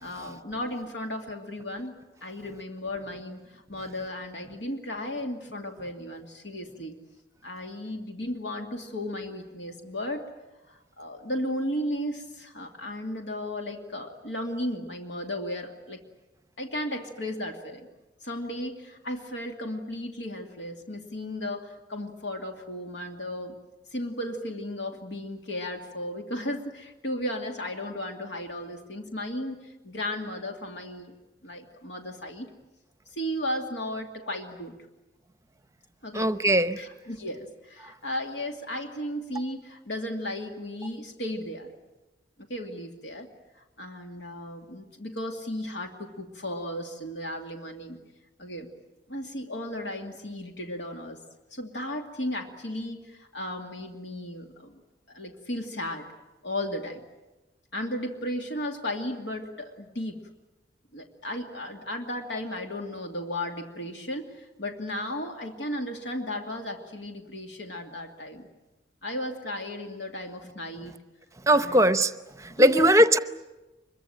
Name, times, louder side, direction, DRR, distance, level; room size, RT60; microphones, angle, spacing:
voice 1, 0.0-7.0 7.4-10.3 10.7-16.0 16.6-17.9 18.2-23.6 23.9-31.1 31.4-32.5 33.1-34.7 36.0-36.3 36.8-41.7 42.4-43.3 43.5-48.0 48.4-48.7 49.1-51.2 51.5-54.8 55.1-56.1 56.4-57.0 57.7-60.3 60.9-68.5 69.0-71.0 71.5-71.9 72.5-72.9, left 1 dB, 75° left, 2.5 m, -35 dB
voice 2, 36.1-36.8 71.5-72.1 72.4-73.2, right 1 dB, 15° right, 0.8 m, -20 dB
25.0 x 23.0 x 8.9 m
head